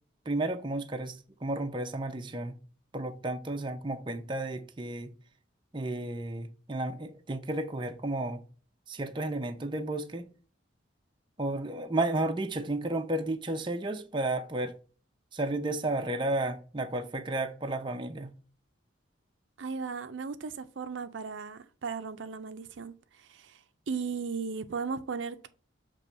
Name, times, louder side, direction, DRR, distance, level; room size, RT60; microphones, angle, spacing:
voice 1, 0.3-2.5 2.9-5.1 5.7-8.4 8.9-10.3 11.4-14.7 15.3-18.3, right 2 dB, 25° right, 0.6 m, -32 dB
voice 2, 19.6-25.5, right 5 dB, 75° right, 0.5 m, -36 dB
7.0 x 3.0 x 5.3 m
head